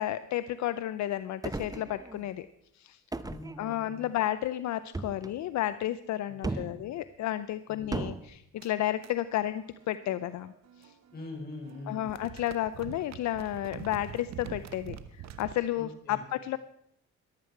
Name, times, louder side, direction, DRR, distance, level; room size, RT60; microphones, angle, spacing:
voice 1, 0.0-2.5 2.7-3.0 3.6-10.5 10.8-10.9 11.9-16.6, left 13 dB, 65° left, 14 dB, 0.6 m, -32 dB
sound 1, 1.4-2.4 3.1-4.1 4.9-5.4 6.4-6.8 7.9-8.3, right 2 dB, 10° right, 0.7 m, -36 dB
voice 2, 3.2-4.1 6.5-6.7 7.7-7.8 11.1-12.1 15.7-16.2, left 2 dB, 30° left, 0 dB, 5.5 m, -43 dB
sound 2, 8.6-11.3 11.5-15.6, right 9 dB, 60° right, 1.0 m, -46 dB
14.5 x 12.0 x 4.6 m, 0.73 s
cardioid pair, 90°, 30 cm